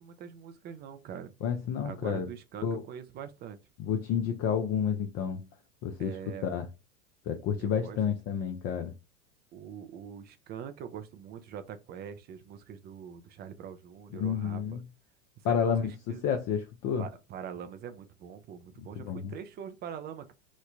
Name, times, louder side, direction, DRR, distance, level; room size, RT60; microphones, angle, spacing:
voice 1, 0.0-1.3 1.8-3.6 6.0-6.5 7.6-8.0 9.5-14.8 15.5-15.8 16.1-16.2 17.0-20.3, right 8 dB, 25° right, 0.4 m, -43 dB
voice 2, 1.4-2.3 2.6-2.8 3.8-5.4 5.8-6.2 6.4-6.7 7.3-8.9 14.1-14.8 15.4-17.0 19.0-19.3, left 7 dB, 40° left, 0.5 m, -30 dB
3.1 x 2.1 x 3.7 m
hypercardioid pair, 100°, 43 cm